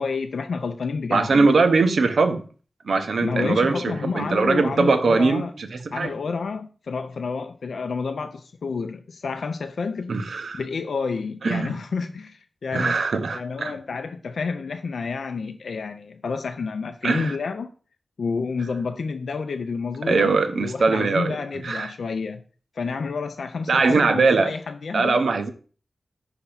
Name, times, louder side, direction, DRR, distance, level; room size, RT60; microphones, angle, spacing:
voice 1, 0.0-1.5 3.2-5.5 5.9-10.1 10.5-13.0 13.3-17.7 18.2-22.4 22.8-25.2, left 4 dB, 90° left, 0.4 m, -29 dB
voice 2, 1.1-2.4 2.9-6.1 10.1-10.6 11.4-11.7 12.7-13.7 17.0-17.3 20.1-21.9 23.7-24.5 24.9-25.5, right 4 dB, 85° right, 0.7 m, -21 dB
5.7 x 3.5 x 5.5 m
wide cardioid pair, 125°, 0 cm